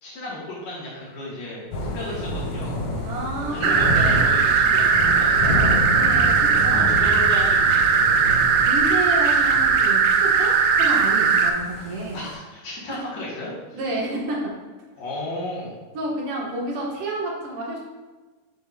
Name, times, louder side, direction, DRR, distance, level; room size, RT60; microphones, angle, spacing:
voice 1, 0.0-2.8 3.5-5.8 6.7-8.2 9.3-9.4 12.1-13.8 15.0-15.8, left 2 dB, 55° left, -6 dB, 2.7 m, -34 dB
Thunder / Rain, 1.7-12.3, left 1 dB, 80° left, 3.2 m, -29 dB
voice 2, 3.0-3.8 5.9-6.8 8.6-12.2 12.9-13.0 13.7-14.5 15.9-17.8, right 2 dB, 50° right, -3 dB, 2.1 m, -30 dB
sound 1, 3.6-11.5, right 5 dB, 80° right, 2.0 m, -18 dB
9.6 x 6.0 x 2.4 m, 1.3 s
omnidirectional pair, 3.9 m